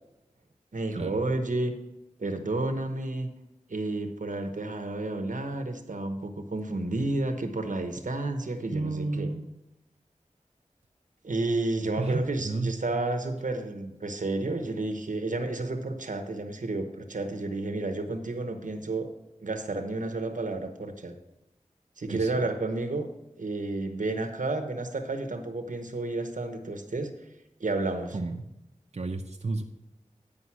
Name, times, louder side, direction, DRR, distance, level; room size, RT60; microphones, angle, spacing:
voice 1, 0.7-1.7 2.2-3.3 3.7-9.3 11.2-19.1 19.4-21.2 22.0-23.1 23.4-27.1 27.6-28.2, right 2 dB, 85° right, 7 dB, 1.0 m, -31 dB
voice 2, 8.7-9.5 12.0-12.8 22.1-22.3 28.1-28.4 28.9-29.6, right 3 dB, 60° right, 2 dB, 0.7 m, -32 dB
9.8 x 5.2 x 5.9 m, 0.91 s
wide cardioid pair, 55°, 13 cm